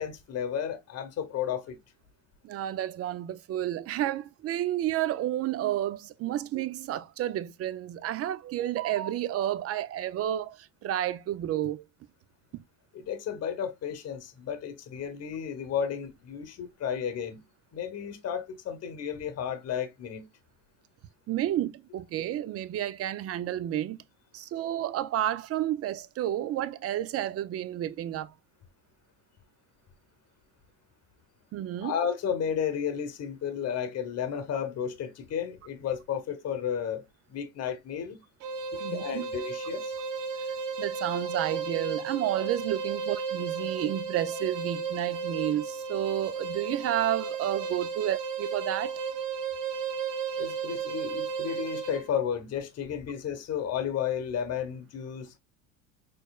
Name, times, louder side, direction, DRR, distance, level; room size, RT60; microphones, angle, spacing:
voice 1, 0.0-1.8 12.9-17.4 17.7-20.2 31.8-38.2 38.7-40.0 50.3-55.4, left 8 dB, 40° left, 0.9 m, -33 dB
voice 2, 2.4-11.8 12.5-12.6 21.3-24.0 24.3-28.3 31.5-31.9 38.8-39.2 40.8-49.0, right 12 dB, 40° right, 0.4 m, -31 dB
sound 1, 38.4-52.1, right 5 dB, 80° right, 1.0 m, -34 dB
4.3 x 3.1 x 2.3 m
supercardioid pair, 100°, 40 cm